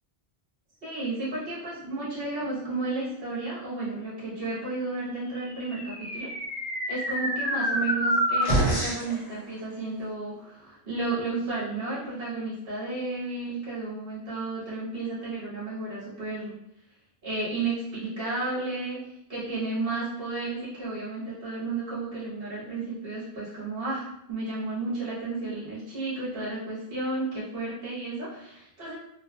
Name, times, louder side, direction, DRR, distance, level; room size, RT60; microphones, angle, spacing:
voice 1, 0.8-6.3 6.9-16.5 17.2-19.0 19.3-29.0, right 3 dB, 60° right, -8 dB, 1.3 m, -32 dB
sound 1, 5.5-9.1, equal, 25° left, 0.8 m, -27 dB
3.1 x 2.2 x 2.3 m, 0.81 s
omnidirectional pair, 1.1 m